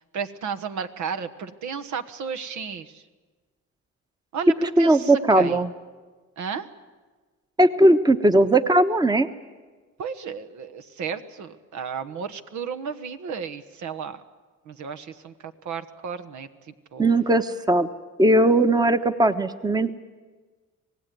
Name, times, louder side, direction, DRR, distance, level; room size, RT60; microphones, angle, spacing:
voice 1, 0.0-3.0 4.3-5.6 6.4-6.7 10.0-14.2 14.6-17.1, right 6 dB, 70° right, 10 dB, 1.4 m, -33 dB
voice 2, 4.8-5.7 7.6-9.3 17.0-17.9 18.2-20.0, right 1 dB, 15° right, 10 dB, 1.1 m, -18 dB
26.0 x 18.0 x 9.5 m, 1.4 s
cardioid pair, 90°, 30 cm